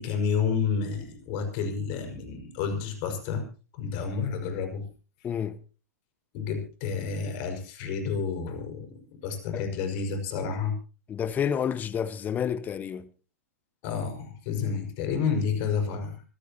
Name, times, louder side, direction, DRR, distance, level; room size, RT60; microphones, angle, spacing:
voice 1, 0.0-3.4 3.7-4.9 6.3-10.8 13.8-16.2, left 6 dB, 40° left, 5.7 m, -30 dB
voice 2, 5.2-5.6 9.5-9.6 11.1-13.1, left 8 dB, 20° left, 1.1 m, -29 dB
25.5 x 15.5 x 3.0 m
figure-of-eight pair, 110°, 9 cm